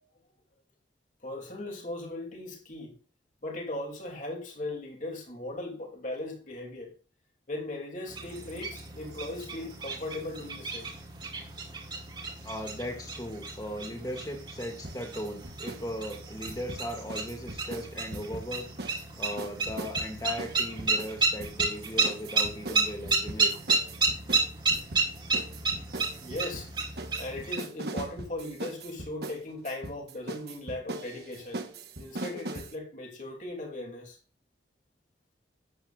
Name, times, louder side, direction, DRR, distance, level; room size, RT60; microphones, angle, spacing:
voice 1, 1.2-3.0 3.4-6.9 7.5-10.9 25.7-26.7 27.0-31.6 32.0-34.2, left 2 dB, 45° left, 3.1 m, -38 dB
sound 1, 8.1-27.6, right 3 dB, 25° right, 2.4 m, -32 dB
voice 2, 12.4-18.7 19.2-23.5, equal, 20° left, 2.4 m, -37 dB
sound 2, 14.8-15.8 16.1-19.0 19.4-32.7, right 2 dB, 60° right, 1.3 m, -40 dB
12.0 x 8.4 x 2.6 m
head